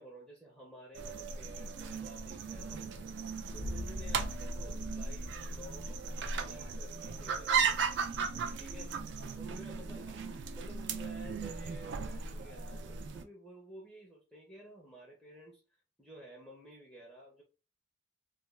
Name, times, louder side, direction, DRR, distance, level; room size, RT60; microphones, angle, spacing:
voice 1, 0.0-3.1 3.5-7.8 8.6-9.0 9.4-15.6 16.0-17.4, right 1 dB, ahead, 0.5 m, -52 dB
sound 1, 0.9-13.2, right 5 dB, 60° right, 0.3 m, -37 dB
sound 2, 3.5-6.5, left 1 dB, 90° left, 0.5 m, -44 dB
2.3 x 2.2 x 3.1 m
head